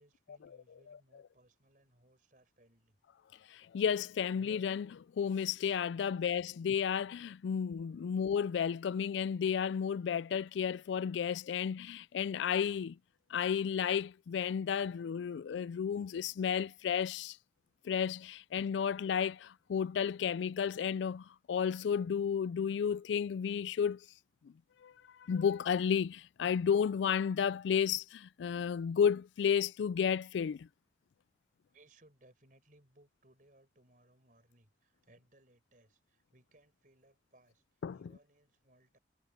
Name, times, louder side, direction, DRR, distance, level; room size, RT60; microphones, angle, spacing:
voice 1, 0.0-3.0 6.1-6.2 31.7-39.0, right 1 dB, 45° right, 5.4 m, -66 dB
voice 2, 3.5-13.0 13.3-17.4 17.8-24.1 24.4-24.5 24.8-24.9 25.2-30.7 37.8-38.0, left 7 dB, 80° left, 0.3 m, -32 dB
head